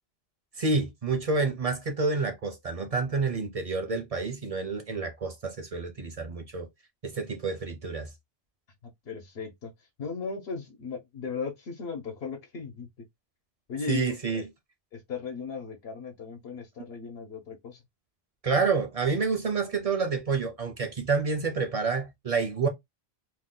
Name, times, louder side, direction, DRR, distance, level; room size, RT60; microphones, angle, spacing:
voice 1, 0.6-6.7 7.0-8.1 13.9-14.4 18.4-22.7, right 4 dB, 45° right, 0.5 m, -28 dB
voice 2, 8.8-9.7 10.0-12.9 13.7-14.5 14.9-17.8, left 5 dB, 80° left, 1.0 m, -37 dB
2.7 x 2.1 x 3.6 m
omnidirectional pair, 1.1 m